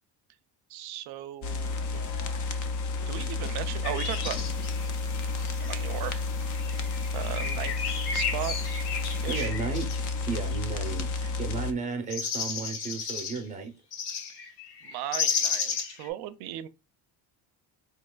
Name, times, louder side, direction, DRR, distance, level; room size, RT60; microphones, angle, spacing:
voice 1, 0.7-2.0 3.1-4.4 5.7-6.2 7.1-8.6 9.2-9.5 14.4-14.5 14.8-16.7, right 13 dB, 65° right, 0.5 m, -36 dB
sound 1, 1.4-11.7, left 3 dB, 45° left, 0.5 m, -31 dB
sound 2, 3.8-5.9 6.4-11.0 12.1-13.4 13.9-16.1, left 6 dB, 70° left, 1.0 m, -33 dB
sound 3, 4.4-9.4, left 3 dB, 90° left, 1.7 m, -52 dB
voice 2, 9.3-9.9 10.3-13.7, right 5 dB, 20° right, 0.6 m, -34 dB
4.0 x 2.9 x 2.2 m
cardioid pair, 155°, 42 cm